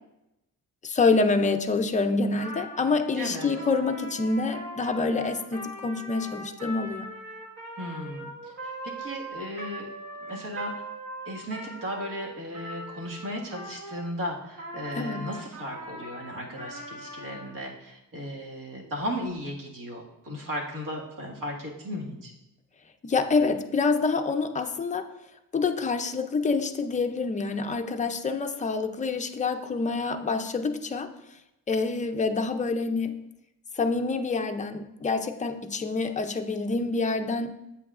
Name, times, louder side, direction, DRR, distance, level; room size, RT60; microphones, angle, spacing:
voice 1, 0.8-7.1 15.0-15.3 23.0-25.1 25.5-31.1 31.7-33.1 33.8-37.5, left 4 dB, 20° left, 6 dB, 0.4 m, -27 dB
Trumpet, 2.4-14.1 14.6-17.6, right 1 dB, 50° right, 1.6 m, -40 dB
voice 2, 3.2-3.5 7.8-9.9 10.3-10.7 11.3-22.3, equal, 70° right, -2 dB, 1.9 m, -36 dB
8.2 x 8.1 x 2.4 m, 0.91 s
cardioid pair, 160°, 34 cm